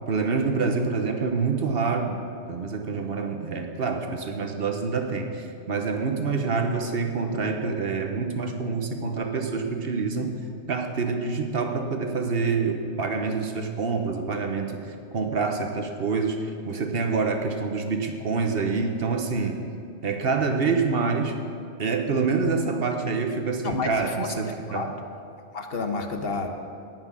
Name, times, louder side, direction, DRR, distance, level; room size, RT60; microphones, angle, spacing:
voice 1, 0.1-10.4 10.7-19.6 20.0-21.4 21.8-24.9, right 4 dB, 55° right, 5 dB, 1.1 m, -26 dB
voice 2, 23.6-24.3 24.7-24.9 25.5-26.5, left 3 dB, 55° left, 5 dB, 1.1 m, -30 dB
17.5 x 6.2 x 6.1 m, 2.5 s
omnidirectional pair, 1.2 m